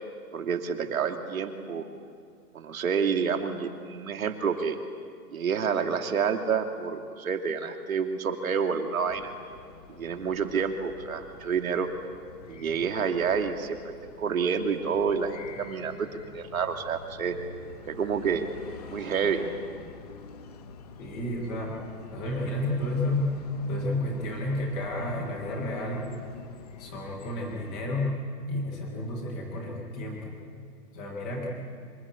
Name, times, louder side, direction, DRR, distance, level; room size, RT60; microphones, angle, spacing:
voice 1, 0.3-1.9 2.5-4.8 5.3-9.3 9.9-11.9 12.5-17.4 17.9-18.4 18.9-19.5, right 6 dB, 55° right, 5 dB, 2.9 m, -29 dB
sound 1, 9.1-27.9, left 6 dB, 25° left, 1.1 m, -47 dB
voice 2, 21.0-21.8 22.1-26.2 26.8-28.2 28.5-30.4 30.9-31.5, left 1 dB, 5° left, -1 dB, 0.6 m, -31 dB
26.5 x 26.0 x 8.6 m, 2.2 s
hypercardioid pair, 165°, 48 cm